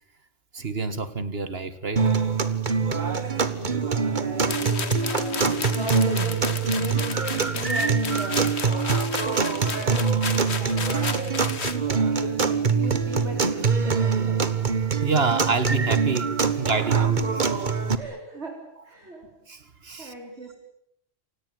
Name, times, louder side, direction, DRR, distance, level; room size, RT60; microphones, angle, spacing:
voice 1, 0.5-2.1 15.0-17.7 19.5-20.1, right 4 dB, 60° right, 13 dB, 2.1 m, -27 dB
sound 1, 2.0-18.0, right 5 dB, 45° right, 1.6 m, -24 dB
voice 2, 2.8-8.4 9.2-11.1 11.9-14.4 16.9-17.0 18.0-18.6 18.8-19.3 20.0-20.5, right 1 dB, 85° right, 0 dB, 4.6 m, -38 dB
sound 2, 4.5-11.8, left 5 dB, 75° left, 1.9 m, -33 dB
28.5 x 17.5 x 9.5 m, 0.74 s
omnidirectional pair, 1.1 m